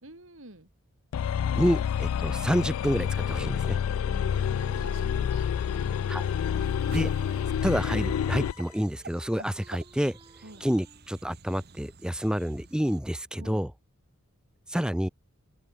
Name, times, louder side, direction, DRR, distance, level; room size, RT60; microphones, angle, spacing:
voice 1, 0.0-0.7 4.0-6.5 9.4-9.5 10.4-10.7 13.4-13.6, right 1 dB, 65° right, 3.2 m, -49 dB
sound 1, 1.1-8.6, left 8 dB, 75° left, 0.3 m, -28 dB
voice 2, 1.6-3.8 6.1-6.2 6.9-7.1 7.6-10.2 10.6-13.7 14.7-15.1, equal, 5° right, 0.8 m, -28 dB
Wind instrument woodwind instrument, 3.7-11.1, right 2 dB, 25° right, 7.8 m, -57 dB
sound 2, 4.3-13.0, right 3 dB, 45° right, 1.1 m, -48 dB
open air
head